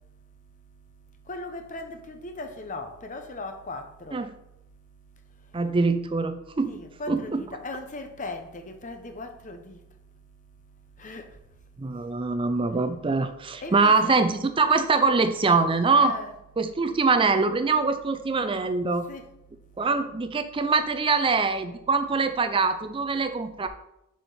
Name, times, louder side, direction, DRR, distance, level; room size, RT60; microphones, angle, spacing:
voice 1, 1.3-4.2 6.7-9.8 11.0-11.3 13.6-14.2 16.0-16.3 19.1-19.2, left 2 dB, 35° left, 0.8 m, -38 dB
voice 2, 5.5-6.7 7.1-7.4 11.8-16.1 16.6-19.0 19.8-23.7, right 4 dB, 25° right, 0.4 m, -23 dB
7.4 x 4.3 x 5.4 m
head